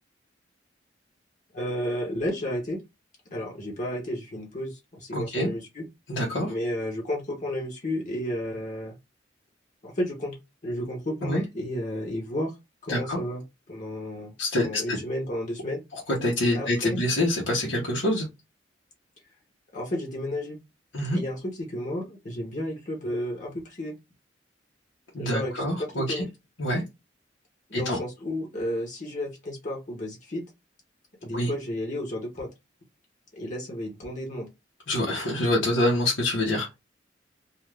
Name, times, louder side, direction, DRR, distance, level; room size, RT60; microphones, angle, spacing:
voice 1, 1.5-2.8 3.3-5.8 6.5-9.0 9.8-10.4 10.6-12.5 12.8-13.4 13.7-14.3 14.6-15.8 16.4-17.0 19.7-20.6 21.1-23.9 25.2-26.3 27.7-30.4 31.2-32.5 33.3-34.5, left 1 dB, 40° left, 0.9 m, -32 dB
voice 2, 5.1-5.5 6.1-6.5 11.2-11.4 12.9-13.2 14.4-15.0 16.2-18.3 20.9-21.2 25.1-26.2 26.6-26.8 27.7-28.0 31.3-31.5 34.9-36.8, left 1 dB, 90° left, 0.9 m, -26 dB
2.4 x 2.4 x 3.2 m
head